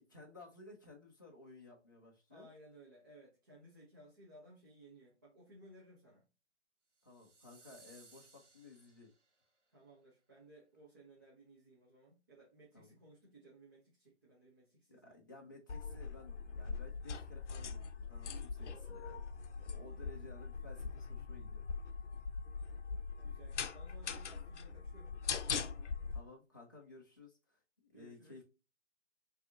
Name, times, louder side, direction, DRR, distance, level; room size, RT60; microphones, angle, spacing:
voice 1, 0.0-2.5 7.0-9.1 12.7-13.0 14.9-19.3 19.6-21.6 26.1-28.4, left 3 dB, 15° left, 0.5 m, -56 dB
voice 2, 2.3-6.3 9.7-15.2 19.8-20.2 23.2-25.2 27.9-28.4, right 1 dB, 15° right, 0.7 m, -60 dB
sound 1, 7.0-9.5, right 3 dB, 90° right, 1.4 m, -63 dB
sound 2, 15.7-26.2, left 5 dB, 75° left, 0.6 m, -42 dB
4.6 x 2.8 x 2.8 m
hypercardioid pair, 165°, 36 cm